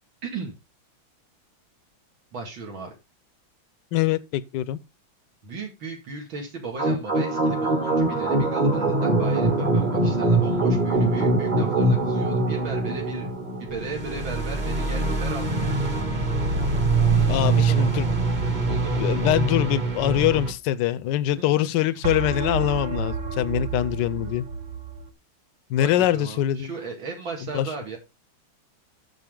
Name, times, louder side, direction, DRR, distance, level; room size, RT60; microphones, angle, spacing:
voice 1, 0.2-0.5 2.3-2.9 5.4-15.8 17.1-17.9 18.7-19.3 21.3-21.7 24.2-24.3 25.7-28.0, right 3 dB, 75° right, 3.1 m, -36 dB
voice 2, 3.9-4.8 17.2-18.1 19.0-24.4 25.7-26.7 27.5-27.7, left 13 dB, 70° left, 1.2 m, -24 dB
sound 1, 6.8-20.5, right 2 dB, 25° right, 1.3 m, -23 dB
sound 2, 15.2-15.6 22.0-25.1, right 5 dB, 50° right, 1.2 m, -31 dB
9.1 x 7.0 x 3.7 m
omnidirectional pair, 2.2 m